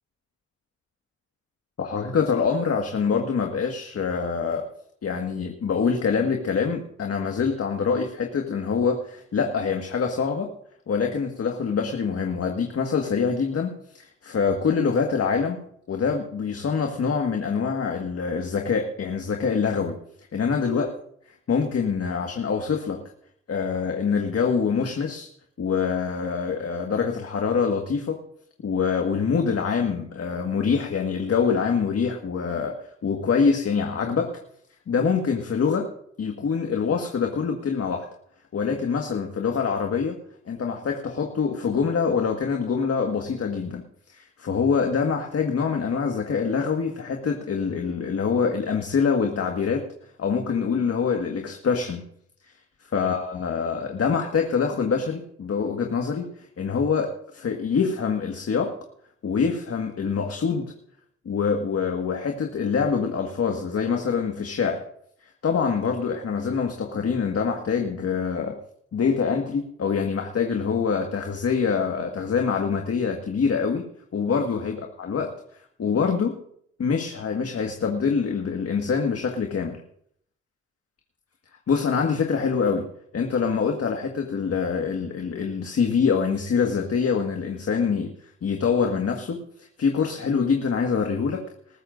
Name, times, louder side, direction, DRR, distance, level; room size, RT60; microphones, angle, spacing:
voice 1, 1.8-4.6 5.0-10.5 10.9-20.0 20.3-20.9 21.5-23.0 23.5-25.3 25.6-28.2 28.6-32.8 33.0-34.3 34.9-35.9 36.2-38.1 38.5-40.2 40.5-43.8 44.1-49.8 50.2-52.1 52.9-56.3 56.6-58.7 59.2-60.7 61.2-64.8 65.4-68.6 68.9-75.3 75.8-76.3 76.8-79.8 81.7-82.9 83.1-88.1 88.4-89.4 89.8-91.4, left 6 dB, 55° left, 3 dB, 1.8 m, -25 dB
20.5 x 14.0 x 2.6 m, 0.67 s
supercardioid pair, 55°, 30 cm